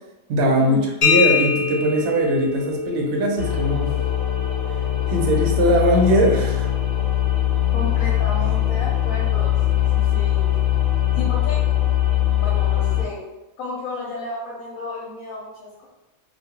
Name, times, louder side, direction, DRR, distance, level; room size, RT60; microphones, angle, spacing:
voice 1, 0.3-3.9 5.1-6.7, equal, 65° right, 1 dB, 0.8 m, -20 dB
sound 1, 1.0-8.6, left 6 dB, 45° left, 0.5 m, -27 dB
sound 2, 3.4-13.0, left 12 dB, 65° left, 1.0 m, -21 dB
voice 2, 7.7-10.5 11.1-11.7 12.3-13.3 13.6-15.9, left 2 dB, 80° left, -5 dB, 1.0 m, -33 dB
2.3 x 2.3 x 2.8 m, 1.0 s
omnidirectional pair, 1.4 m